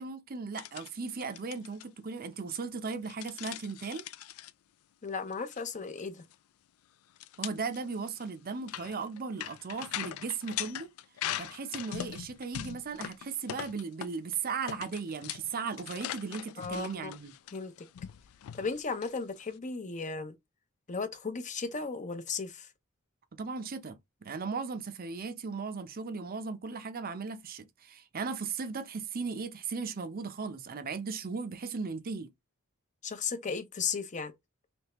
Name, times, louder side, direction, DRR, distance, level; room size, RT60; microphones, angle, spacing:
voice 1, 0.0-4.0 7.4-10.9 11.4-17.3 23.4-32.3, right 4 dB, 45° right, 0.6 m, -37 dB
sound 1, 0.5-0.9 1.2-1.8 2.9-4.5 5.3-5.6 5.9-6.0 6.3-6.4 7.2-14.3 14.7-19.6, left 11 dB, 90° left, 0.3 m, -41 dB
voice 2, 5.0-6.2 16.6-17.1 17.5-17.9 18.6-20.3 20.9-22.7 33.0-34.3, left 5 dB, 35° left, 0.6 m, -35 dB
3.5 x 3.2 x 2.9 m
head